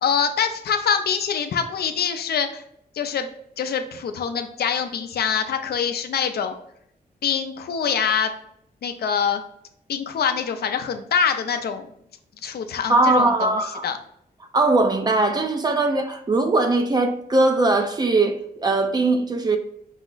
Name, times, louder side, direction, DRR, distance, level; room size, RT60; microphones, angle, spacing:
voice 1, 0.0-2.6 2.9-3.3 3.6-6.6 7.2-8.3 8.8-9.4 9.9-11.9 12.4-13.5 13.8-14.0, left 7 dB, 80° left, 0.5 m, -24 dB
voice 2, 12.9-13.8 14.5-19.6, right 2 dB, 25° right, 0.5 m, -20 dB
5.5 x 2.0 x 3.8 m
wide cardioid pair, 155°, 16 cm